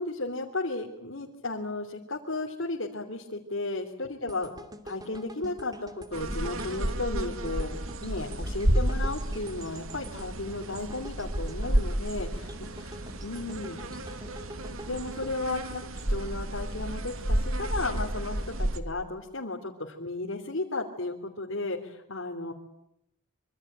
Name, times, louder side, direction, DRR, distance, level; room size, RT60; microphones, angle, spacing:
voice 1, 0.0-4.5 4.8-12.9 13.2-13.8 14.9-22.5, left 2 dB, 65° left, 1 dB, 3.2 m, -34 dB
sound 1, 4.3-16.5 16.9-17.0, right 1 dB, 20° right, 2.6 m, -46 dB
sound 2, 6.1-18.8, right 1 dB, 75° right, 2.7 m, -31 dB
26.0 x 25.5 x 8.9 m, 0.81 s
head